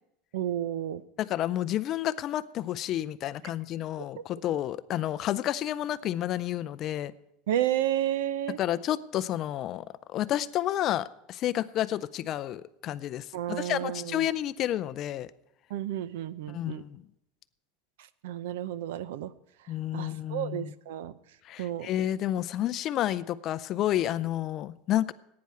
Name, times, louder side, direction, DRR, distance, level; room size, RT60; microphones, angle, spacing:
voice 1, 0.3-1.0 7.5-8.6 13.3-14.3 15.7-16.8 18.2-19.3 19.9-21.1 21.6-21.9, right 12 dB, 80° right, 16 dB, 0.7 m, -31 dB
voice 2, 1.2-7.1 8.6-9.8 10.1-15.3 16.5-17.0 19.7-20.7 21.5-25.1, left 12 dB, 30° left, 16 dB, 0.4 m, -30 dB
15.5 x 9.5 x 5.7 m, 0.83 s
supercardioid pair, 175°, 0 cm